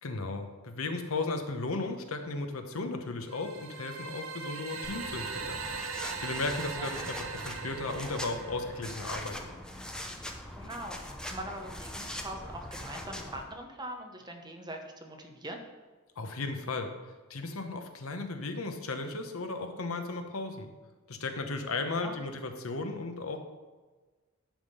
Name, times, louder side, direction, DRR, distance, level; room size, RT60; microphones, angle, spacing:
voice 1, 0.0-5.6 6.2-9.4 16.2-16.9 17.3-20.7 21.1-23.4, left 3 dB, 80° left, 6 dB, 1.0 m, -35 dB
sound 1, 3.3-9.2, right 5 dB, 70° right, 0.8 m, -40 dB
sound 2, 4.8-13.4, left 1 dB, 5° left, 0.7 m, -42 dB
voice 2, 10.6-15.6 22.0-22.2, right 1 dB, 20° right, 3 dB, 0.9 m, -42 dB
10.5 x 3.7 x 6.6 m, 1.3 s
head